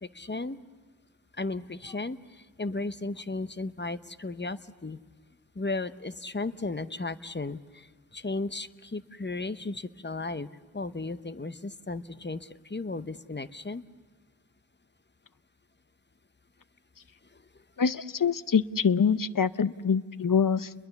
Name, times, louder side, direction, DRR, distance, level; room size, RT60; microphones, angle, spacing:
voice 1, 0.0-0.6 1.4-5.0 5.6-7.9 8.1-10.5 10.7-13.8, left 3 dB, 30° left, 12 dB, 0.8 m, -35 dB
voice 2, 17.8-20.7, left 6 dB, 65° left, 15 dB, 0.7 m, -25 dB
29.5 x 22.0 x 7.0 m, 1.5 s
wide cardioid pair, 50°, 35 cm